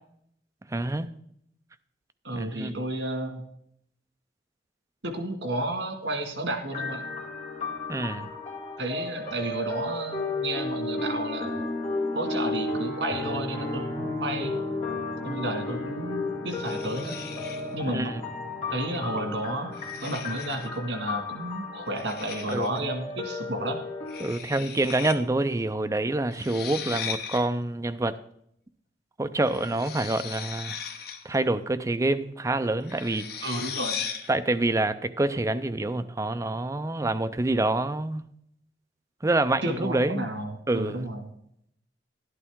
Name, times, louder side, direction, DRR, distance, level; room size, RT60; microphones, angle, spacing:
voice 1, 0.7-1.1 2.3-2.7 7.9-8.3 17.9-18.2 22.5-22.7 24.2-28.2 29.2-30.8 31.2-33.5 34.3-38.2 39.2-40.3 40.7-41.1, right 2 dB, 15° right, 10 dB, 0.4 m, -27 dB
voice 2, 2.2-3.4 5.0-7.0 8.8-11.6 12.1-14.6 15.2-17.2 17.7-18.1 18.7-19.7 20.0-23.8 33.4-34.1 39.6-41.2, right 1 dB, 85° right, 5 dB, 2.0 m, -32 dB
sound 1, 6.7-24.3, left 2 dB, 40° left, 2.2 m, -33 dB
sound 2, 16.5-17.8 18.9-19.2 19.7-20.8 22.0-22.8 24.1-25.2 25.4-25.5 26.3-27.4 29.4-31.3 32.8-34.3, left 7 dB, 60° left, 0.9 m, -37 dB
11.0 x 11.0 x 3.6 m, 0.72 s
head